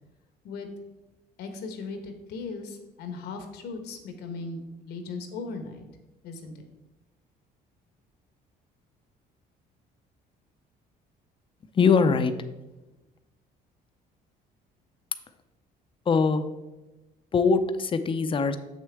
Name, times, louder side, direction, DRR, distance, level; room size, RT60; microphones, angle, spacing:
voice 1, 1.4-5.8 6.2-6.7, left 4 dB, 80° left, 6 dB, 1.2 m, -38 dB
voice 2, 11.7-12.3 16.1-16.4 17.3-18.6, left 5 dB, 30° left, 10 dB, 0.6 m, -22 dB
7.3 x 6.4 x 3.5 m, 1.1 s
cardioid pair, 110°, 17 cm